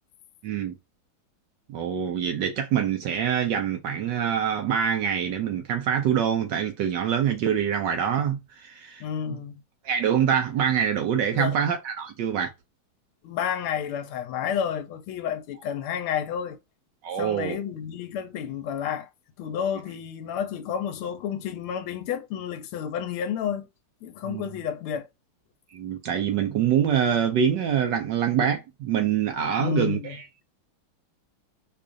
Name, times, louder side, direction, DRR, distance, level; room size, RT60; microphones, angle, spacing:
voice 1, 0.4-0.7 1.7-9.0 9.8-12.5 17.0-17.6 24.3-24.4 25.7-30.2, right 8 dB, 70° right, 1.1 m, -25 dB
voice 2, 9.0-9.6 11.3-11.6 13.2-16.6 17.2-19.1 19.4-23.7 24.0-25.1 29.6-30.2, left 8 dB, 80° left, 1.5 m, -30 dB
5.0 x 2.4 x 2.5 m
omnidirectional pair, 2.3 m